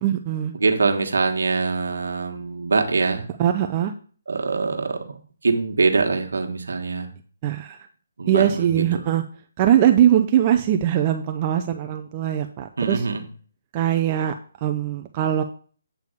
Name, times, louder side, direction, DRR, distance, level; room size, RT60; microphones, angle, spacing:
voice 1, 0.0-0.5 3.4-3.9 7.4-7.8 8.3-9.2 9.6-13.1 13.7-14.3 14.6-15.4, right 10 dB, 25° right, 6 dB, 0.5 m, -21 dB
voice 2, 0.6-3.2 4.3-5.0 5.4-7.1 8.2-8.8 12.8-13.2, right 4 dB, 80° right, 4 dB, 1.5 m, -23 dB
8.4 x 3.4 x 6.6 m, 0.43 s
hypercardioid pair, 160°, 0 cm